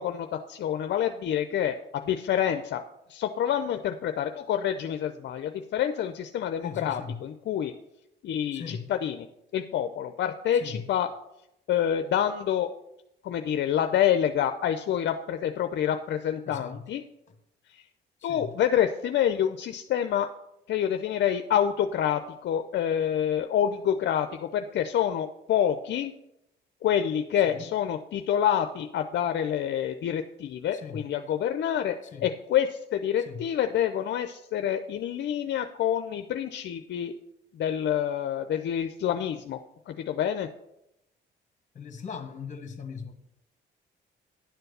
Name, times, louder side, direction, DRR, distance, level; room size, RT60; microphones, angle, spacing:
voice 1, 0.0-2.8 3.1-7.7 8.2-9.3 9.5-11.1 11.7-12.7 13.2-17.0 17.7-17.8 18.2-20.3 20.7-26.1 26.8-32.0 32.2-37.1 37.5-39.6 39.9-40.5, left 9 dB, 65° left, 0.6 m, -27 dB
voice 2, 6.6-7.2 8.5-8.9 10.5-10.8 16.4-16.8 18.2-18.5 27.4-27.7 30.7-31.0 32.1-32.3 33.2-33.4 41.7-43.1, left 6 dB, 40° left, 1.4 m, -39 dB
10.5 x 4.5 x 6.7 m
cardioid pair, 90°, 20 cm